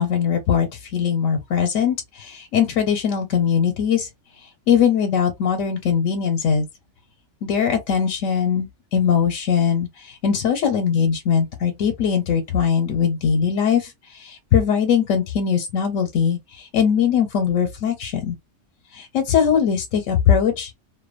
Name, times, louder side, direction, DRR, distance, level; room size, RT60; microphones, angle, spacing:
voice 1, 0.0-4.1 4.7-6.6 7.4-18.4 18.9-20.7, left 7 dB, 85° left, 1.1 m, -21 dB
2.6 x 2.2 x 2.4 m
omnidirectional pair, 1.3 m